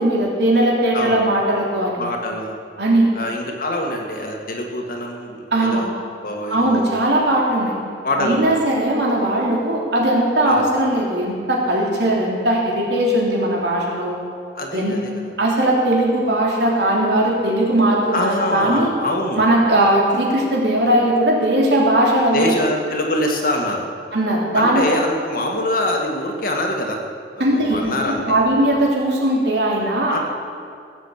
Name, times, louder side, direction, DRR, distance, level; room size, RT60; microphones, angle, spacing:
voice 1, 0.0-2.0 2.8-3.1 5.5-5.9 6.5-7.8 8.2-14.2 14.7-15.0 15.4-18.9 19.4-22.5 24.1-25.0 27.4-30.2, right 1 dB, 70° right, -2 dB, 3.3 m, -19 dB
voice 2, 2.0-2.6 3.1-5.9 6.2-6.9 8.0-8.5 10.4-10.7 14.6-15.1 18.1-19.4 22.3-23.9 24.5-27.0 27.3-28.4 30.1-30.2, left 1 dB, 50° left, 1 dB, 1.9 m, -24 dB
17.5 x 7.7 x 8.1 m, 2.2 s
head